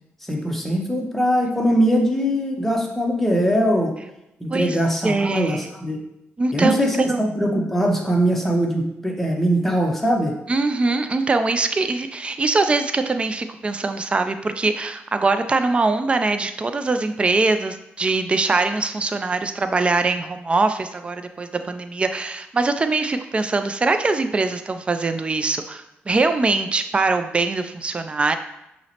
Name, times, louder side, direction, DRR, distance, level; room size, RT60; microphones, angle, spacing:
voice 1, 0.2-3.9 4.4-6.0 6.5-10.3, equal, 5° left, 1 dB, 0.7 m, -21 dB
voice 2, 5.0-5.6 6.4-7.2 10.5-28.4, right 3 dB, 25° right, 8 dB, 0.3 m, -22 dB
5.5 x 2.1 x 2.8 m, 0.87 s
cardioid pair, 85°, 4 cm